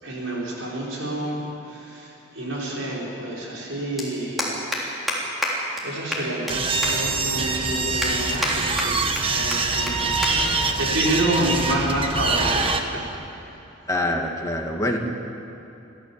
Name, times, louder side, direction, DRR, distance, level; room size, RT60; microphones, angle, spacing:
voice 1, 0.0-4.6 5.8-13.1 13.3-13.6, right 1 dB, 75° right, -4 dB, 5.1 m, -29 dB
sound 1, 1.7-1.8 3.2-3.3 3.5-3.7 4.0-4.1 4.4-4.8 5.1-5.2 5.4-5.5 5.8-5.9 6.1-6.5 6.8-6.9 7.4-7.5 8.0-8.5 8.8-9.2 9.5-9.6 9.9-10.0 10.2-10.3 10.6-10.9 11.6-11.9, left 1 dB, ahead, 3.5 m, -27 dB
sound 2, 6.5-12.8, right 3 dB, 25° right, 1.2 m, -24 dB
voice 2, 13.9-15.0, left 1 dB, 15° left, 0 dB, 1.8 m, -25 dB
24.5 x 15.5 x 7.4 m, 2.9 s
head